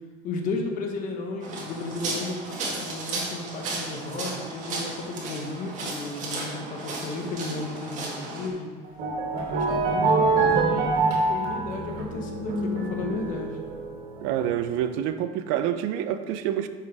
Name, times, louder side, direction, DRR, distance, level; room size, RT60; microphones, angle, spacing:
voice 1, 0.2-8.7 9.5-13.6, left 3 dB, 45° left, 2 dB, 1.3 m, -34 dB
sound 1, 1.4-8.5, right 2 dB, 40° right, 1.9 m, -34 dB
sound 2, 8.8-14.7, right 3 dB, 60° right, 2.6 m, -25 dB
voice 2, 14.2-16.7, right 10 dB, 90° right, 10 dB, 0.6 m, -27 dB
10.0 x 6.9 x 3.5 m, 1.4 s
cardioid pair, 165°, 19 cm